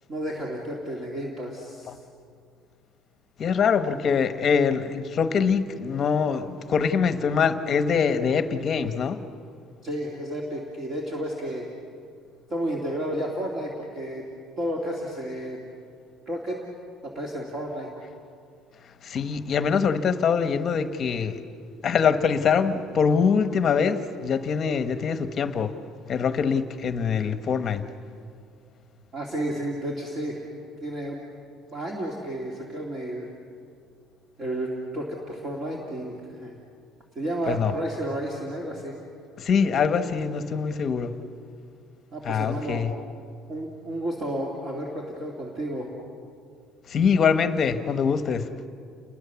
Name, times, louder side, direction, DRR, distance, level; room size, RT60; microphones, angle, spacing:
voice 1, 0.1-1.9 9.8-11.7 12.5-14.3 14.6-15.7 16.3-16.6 17.0-17.9 29.1-31.2 31.7-33.3 34.4-36.6 37.1-38.9 42.1-42.9 43.5-45.9, right 1 dB, 30° right, -2 dB, 2.7 m, -32 dB
voice 2, 3.4-9.2 19.0-21.4 21.8-25.7 26.1-27.9 37.5-37.7 39.4-41.1 42.2-42.9 46.9-48.5, left 6 dB, 30° left, 9 dB, 1.1 m, -24 dB
29.5 x 21.5 x 7.0 m, 2.4 s
cardioid pair, 170°, 0 cm